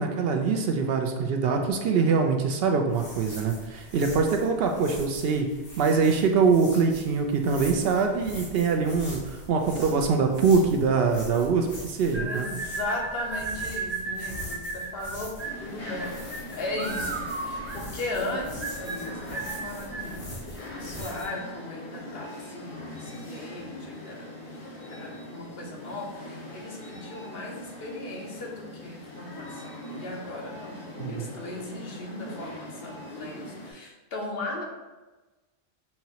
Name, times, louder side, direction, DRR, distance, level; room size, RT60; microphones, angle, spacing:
voice 1, 0.0-5.5 5.8-12.5 31.0-31.3, right 5 dB, 70° right, 4 dB, 0.7 m, -24 dB
sound 1, 2.9-21.3, left 1 dB, 45° left, 1.3 m, -43 dB
sound 2, 12.1-20.2, right 3 dB, 40° right, 0.4 m, -35 dB
voice 2, 12.2-15.3 15.6-20.2 20.5-24.3 24.9-34.6, left 2 dB, 65° left, 0 dB, 1.0 m, -37 dB
sound 3, 15.4-33.7, left 1 dB, 80° left, 1.5 m, -41 dB
5.5 x 2.9 x 2.8 m, 1.2 s
omnidirectional pair, 1.1 m